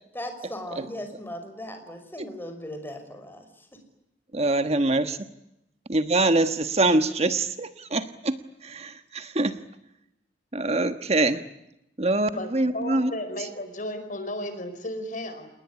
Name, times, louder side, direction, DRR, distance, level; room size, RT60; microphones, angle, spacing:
voice 1, 0.1-3.4, left 1 dB, 10° left, 6 dB, 5.7 m, -37 dB
voice 2, 4.3-5.2 5.9-8.4 8.6-9.5 10.5-11.4 12.0-13.2, right 2 dB, 35° right, 9 dB, 1.3 m, -24 dB
voice 3, 12.4-15.5, left 1 dB, 45° left, 10 dB, 5.0 m, -34 dB
28.5 x 20.5 x 9.9 m, 0.86 s
head